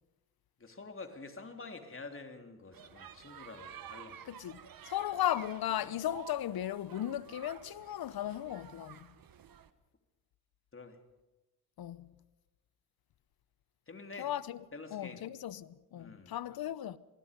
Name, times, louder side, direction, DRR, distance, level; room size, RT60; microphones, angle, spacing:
voice 1, 0.6-4.3 10.7-11.0 13.9-14.3 14.7-15.2 16.0-16.3, left 3 dB, 30° left, 3.5 m, -48 dB
sound 1, 2.7-9.7, right 9 dB, 55° right, 1.4 m, -52 dB
voice 2, 4.3-9.1 11.8-12.1 14.2-14.6 14.9-17.0, left 12 dB, 65° left, 1.0 m, -36 dB
26.5 x 20.0 x 5.3 m
supercardioid pair, 60°, 40 cm